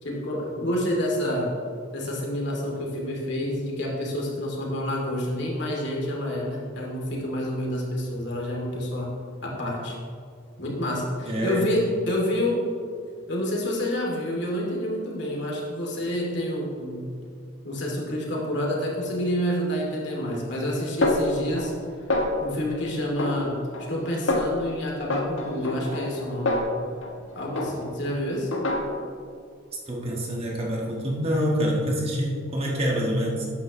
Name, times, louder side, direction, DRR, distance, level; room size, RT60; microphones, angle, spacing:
voice 1, 0.0-1.5 1.9-9.1 9.4-10.0 10.6-12.7 13.3-17.1 17.6-21.7 22.4-23.6 23.9-26.6 27.3-28.5, equal, 55° left, -2 dB, 2.5 m, -28 dB
voice 2, 11.3-11.7 29.9-33.5, equal, 30° right, -2 dB, 1.5 m, -26 dB
Snare drum, 21.0-21.8 22.1-22.7 23.2-24.0 24.3-24.7 25.1-27.2 27.6-28.1 28.5-29.2, left 2 dB, 70° left, 1.1 m, -27 dB
13.0 x 9.6 x 3.1 m, 2.3 s
head